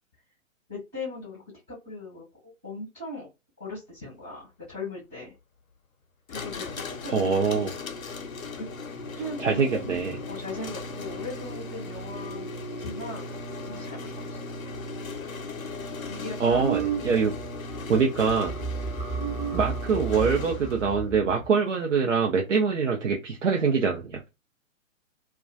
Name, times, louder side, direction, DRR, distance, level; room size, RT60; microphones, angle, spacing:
voice 1, 0.7-1.4 1.7-3.3 3.6-5.3 6.3-7.9 8.5-8.7 9.2-10.0 10.3-12.5 12.8-14.4 16.1-16.8 17.9-18.1 18.7-18.9, left 2 dB, 5° right, 0.3 m, -39 dB
sound 1, 6.3-21.0, left 3 dB, 80° left, 0.6 m, -37 dB
voice 2, 7.1-7.7 9.4-10.1 16.4-17.3 17.9-18.6 19.5-24.2, right 5 dB, 60° right, 0.6 m, -24 dB
sound 2, 16.5-17.5 17.7-18.0 18.3-21.5, right 6 dB, 30° right, 0.7 m, -32 dB
2.2 x 2.2 x 2.5 m
figure-of-eight pair, 125°, 40 cm